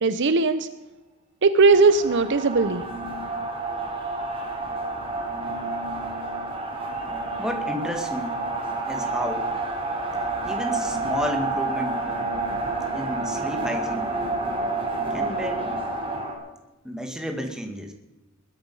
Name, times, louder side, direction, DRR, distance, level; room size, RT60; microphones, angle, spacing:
voice 1, 0.0-0.7 1.4-2.8, right 4 dB, 55° right, 12 dB, 0.8 m, -18 dB
sound 1, 1.7-16.3, right 2 dB, 25° right, 3.4 m, -29 dB
voice 2, 7.4-8.5 8.9-9.5 10.4-12.1 12.9-14.1 15.1-15.7 16.8-17.9, equal, 5° right, 4 dB, 1.9 m, -31 dB
21.0 x 10.5 x 5.5 m, 1.0 s
head